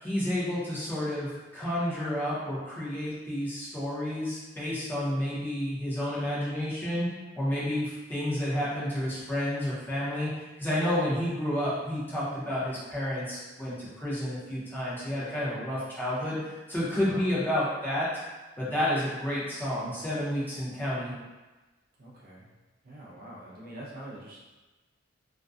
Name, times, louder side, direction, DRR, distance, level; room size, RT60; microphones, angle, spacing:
voice 1, 0.0-7.1 7.3-16.4 16.7-18.1 18.6-21.1, left 1 dB, 10° left, -9 dB, 0.7 m, -30 dB
voice 2, 16.9-17.3 22.0-22.5 22.8-24.4, right 1 dB, 50° right, -5 dB, 0.5 m, -44 dB
2.5 x 2.1 x 2.3 m, 1.2 s
head